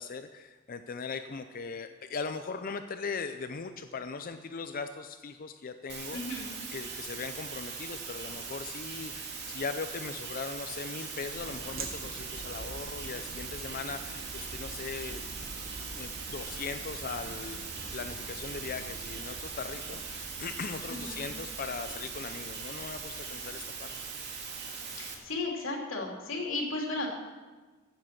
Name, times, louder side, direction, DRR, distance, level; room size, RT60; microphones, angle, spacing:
voice 1, 0.0-6.2 6.7-15.2 16.0-17.6 17.9-23.9, left 4 dB, 45° left, 9 dB, 0.5 m, -39 dB
sound 1, 5.9-25.1, right 5 dB, 60° right, 2.0 m, -41 dB
voice 2, 6.1-6.5 20.9-21.2 24.9-27.1, left 2 dB, 85° left, 0 dB, 2.8 m, -34 dB
sound 2, 11.3-24.2, right 2 dB, 85° right, 1.6 m, -47 dB
16.0 x 7.6 x 5.9 m, 1.3 s
head